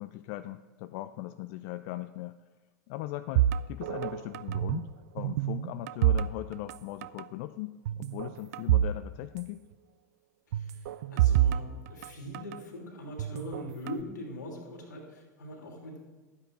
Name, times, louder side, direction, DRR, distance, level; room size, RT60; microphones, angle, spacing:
voice 1, 0.0-2.4 2.9-4.9 5.1-9.6, left 16 dB, 50° left, 11 dB, 0.4 m, -39 dB
sound 1, 3.4-4.9 5.2-6.8 7.0-7.3 7.9-9.0 9.2-9.3 10.5-12.6 13.2-14.0, right 12 dB, 60° right, 0.4 m, -27 dB
voice 2, 10.5-16.0, equal, 75° left, 0 dB, 2.8 m, -42 dB
12.5 x 8.6 x 4.5 m, 1.3 s
figure-of-eight pair, 85°, 10 cm